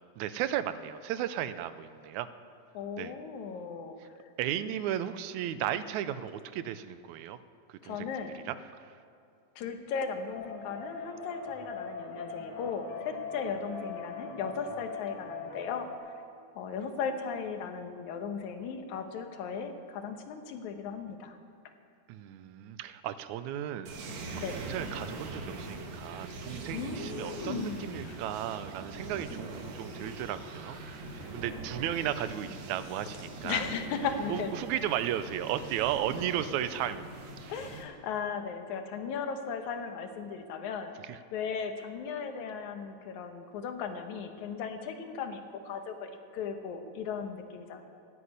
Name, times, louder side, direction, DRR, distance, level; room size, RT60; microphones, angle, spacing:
voice 1, 0.2-2.3 3.0-3.1 4.4-7.4 7.8-8.1 8.5-8.6 22.1-24.1 24.6-30.8 31.3-33.6 34.3-37.1 41.1-41.2, right 11 dB, 90° right, 13 dB, 2.0 m, -34 dB
voice 2, 2.7-4.0 7.8-8.3 9.6-16.1 16.6-21.4 24.4-24.6 26.7-28.2 31.2-31.6 33.4-34.5 37.5-40.9 41.3-47.8, left 6 dB, 85° left, 7 dB, 2.4 m, -37 dB
sound 1, 10.3-16.0, left 5 dB, 60° left, 2.5 m, -41 dB
sound 2, 23.9-37.8, right 2 dB, 65° right, 2.6 m, -42 dB
15.0 x 8.5 x 9.5 m, 2.5 s
omnidirectional pair, 3.3 m